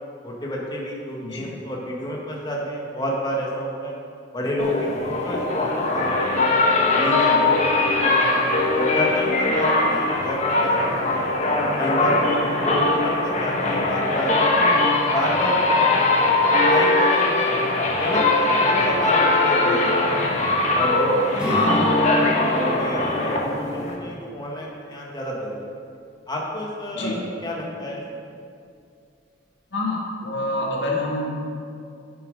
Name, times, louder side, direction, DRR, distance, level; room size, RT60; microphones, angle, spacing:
voice 1, 0.2-3.9 4.3-6.3 6.8-7.7 8.0-11.3 11.8-14.4 15.1-16.0 16.4-20.1 20.7-21.8 22.2-25.7 26.3-28.0, equal, 25° left, -3 dB, 1.6 m, -30 dB
sound 1, 4.6-24.0, left 2 dB, 40° left, 1.2 m, -21 dB
Acoustic guitar / Strum, 21.4-25.0, equal, 5° right, 1.6 m, -31 dB
voice 2, 21.5-21.9 26.9-27.2 29.7-31.3, left 2 dB, 70° left, -3 dB, 1.8 m, -27 dB
8.8 x 7.1 x 5.3 m, 2.5 s
head